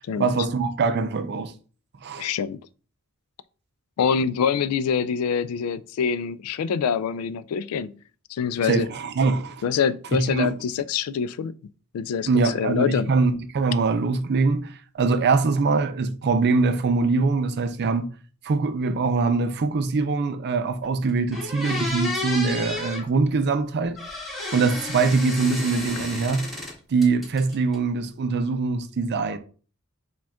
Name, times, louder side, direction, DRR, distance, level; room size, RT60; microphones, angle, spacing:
voice 1, 0.2-1.5 2.0-2.3 8.6-9.6 10.1-10.5 12.3-18.1 18.4-24.0 24.5-26.5 26.9-29.4, right 4 dB, 50° right, 0.4 m, -23 dB
voice 2, 2.2-2.6 4.0-7.9 8.3-8.9 9.6-11.5 11.9-13.1, left 7 dB, 75° left, 0.3 m, -25 dB
sound 1, 20.8-20.9 21.3-23.0 24.0-26.7 27.0-27.7, left 2 dB, ahead, 1.7 m, -32 dB
4.9 x 2.3 x 3.5 m
head